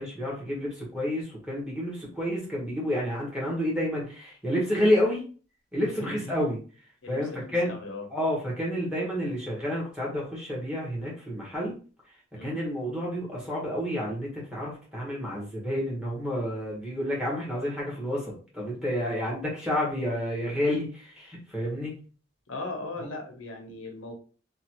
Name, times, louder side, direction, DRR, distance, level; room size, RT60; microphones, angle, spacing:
voice 1, 0.0-5.2 5.7-6.6 7.1-7.7 8.1-11.8 12.1-12.2 12.4-22.0 23.0-23.1, equal, 5° right, -5 dB, 1.0 m, -29 dB
voice 2, 5.8-6.3 7.0-7.4 7.7-8.0 12.3-12.6 22.5-24.1, left 2 dB, 80° left, 3 dB, 0.7 m, -38 dB
2.9 x 2.3 x 2.9 m, 0.39 s
head